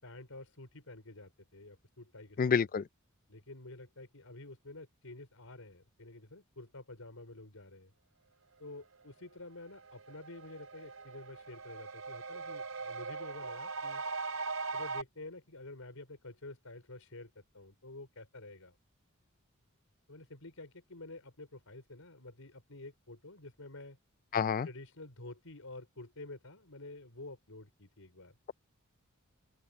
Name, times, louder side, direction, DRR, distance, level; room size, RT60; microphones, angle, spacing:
voice 1, 0.0-2.5 3.3-7.9 8.6-14.0 14.7-18.7 20.1-24.0 24.6-28.4, left 2 dB, 80° left, 4.9 m, -49 dB
voice 2, 2.4-2.9 24.3-24.7, left 6 dB, 40° left, 0.4 m, -28 dB
sound 1, 9.2-9.3 9.7-15.0, right 4 dB, 70° right, 3.9 m, -40 dB
open air
head